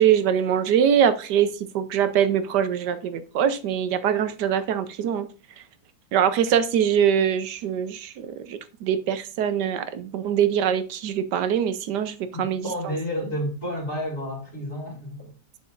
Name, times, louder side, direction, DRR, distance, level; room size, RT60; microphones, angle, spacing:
voice 1, 0.0-5.3 6.1-12.6, right 9 dB, 70° right, 1.2 m, -23 dB
voice 2, 12.3-15.3, equal, 40° left, 2.7 m, -31 dB
7.7 x 7.0 x 2.5 m
omnidirectional pair, 1.9 m